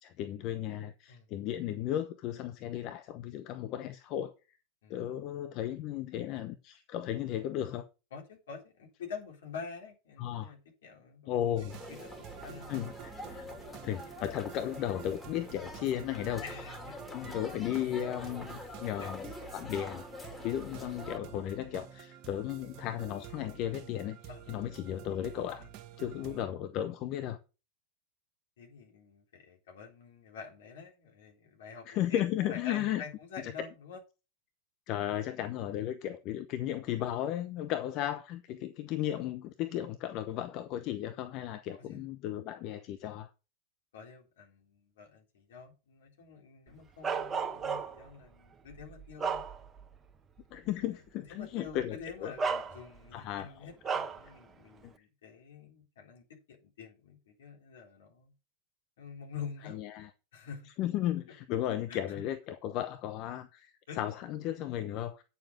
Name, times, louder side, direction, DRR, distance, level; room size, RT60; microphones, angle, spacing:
voice 1, 0.0-4.3 4.9-7.8 10.2-10.5 11.3-11.8 12.7-13.5 13.8-16.4 17.1-20.0 20.4-24.2 24.5-25.6 26.0-27.4 31.9-33.0 34.9-43.3 50.5-52.3 53.1-53.5 54.8-54.9 59.7-60.1 60.8-65.2, left 11 dB, 45° left, 0.9 m, -35 dB
voice 2, 8.1-11.3 11.9-12.8 13.4-13.8 16.4-17.1 19.0-19.1 20.4-20.5 24.3-24.5 25.6-25.7 26.2-26.4 28.6-34.0 41.7-42.1 43.9-49.5 51.2-58.3 59.0-59.8 60.3-60.7 61.9-62.2 63.9-64.0, left 6 dB, 70° left, 3.7 m, -47 dB
sound 1, 11.6-26.4, right 11 dB, 45° right, 1.4 m, -49 dB
sound 2, 11.7-21.2, left 2 dB, 10° left, 2.8 m, -46 dB
Bark, 47.0-48.1 48.7-50.0 50.4-50.6 51.7-51.8 52.4-53.2 53.8-54.3, right 5 dB, 20° right, 1.2 m, -34 dB
9.4 x 6.9 x 5.2 m
hypercardioid pair, 90°, 0 cm